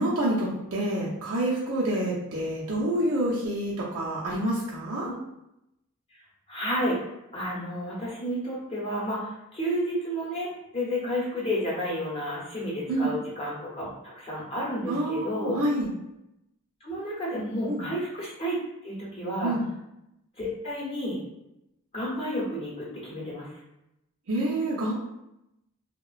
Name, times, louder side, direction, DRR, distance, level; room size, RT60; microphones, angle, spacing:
voice 1, 0.0-5.1 12.9-13.1 14.9-15.9 17.7-17.9 19.4-19.7 24.3-24.9, right 1 dB, 75° right, -7 dB, 0.6 m, -27 dB
voice 2, 6.5-7.0 7.3-13.9 14.2-15.6 16.8-18.6 18.8-19.5 20.4-21.2 21.9-23.5, equal, 25° left, -5 dB, 0.7 m, -31 dB
2.8 x 2.1 x 2.3 m, 0.87 s
head